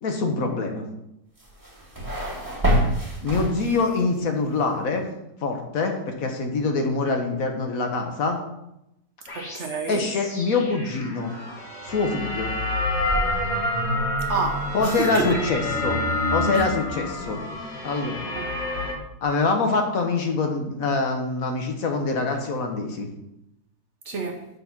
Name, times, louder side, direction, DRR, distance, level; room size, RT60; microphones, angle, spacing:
voice 1, 0.0-0.8 3.2-5.1 5.4-8.4 9.9-11.3 11.8-12.5 14.7-16.0 16.3-17.4 17.8-18.3 19.2-23.1, left 3 dB, 65° left, 3 dB, 1.4 m, -25 dB
sound 1, 1.4-4.1, right 1 dB, 15° right, 1.5 m, -26 dB
sound 2, 9.3-18.9, left 1 dB, 45° left, 1.8 m, -28 dB
voice 2, 9.3-10.1 14.3-15.4 16.5-16.7 18.3-18.6 24.1-24.5, right 4 dB, 55° right, 3 dB, 1.0 m, -28 dB
6.8 x 4.0 x 5.9 m, 0.84 s
omnidirectional pair, 1.7 m